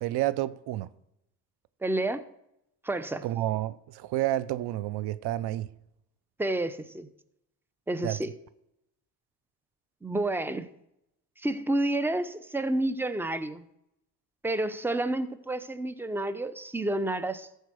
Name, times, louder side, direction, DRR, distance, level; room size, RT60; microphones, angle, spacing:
voice 1, 0.0-0.9 3.2-5.7 8.0-8.2, right 14 dB, 80° right, 0.6 m, -30 dB
voice 2, 1.8-2.2 2.8-3.2 6.4-7.1 7.9-8.3 10.0-10.7 11.4-13.6 14.4-17.5, right 1 dB, 5° right, 0.7 m, -30 dB
13.5 x 4.6 x 6.3 m
cardioid pair, 80°, 39 cm